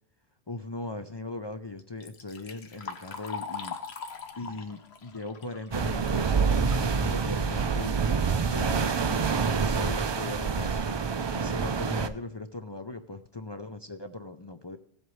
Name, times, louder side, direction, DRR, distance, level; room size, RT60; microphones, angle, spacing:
voice 1, 0.5-3.8 4.4-8.0 8.4-10.8 11.3-14.8, left 2 dB, 40° left, 7 dB, 0.4 m, -39 dB
Liquid, 1.8-6.9 7.3-7.4 8.3-8.4 8.8-9.1 9.8-9.9 10.4-10.5 10.9-11.1, left 5 dB, 75° left, 1.2 m, -41 dB
sound 1, 5.7-12.1, right 5 dB, 45° right, 0.3 m, -27 dB
17.0 x 7.9 x 3.1 m, 0.68 s
omnidirectional pair, 1.1 m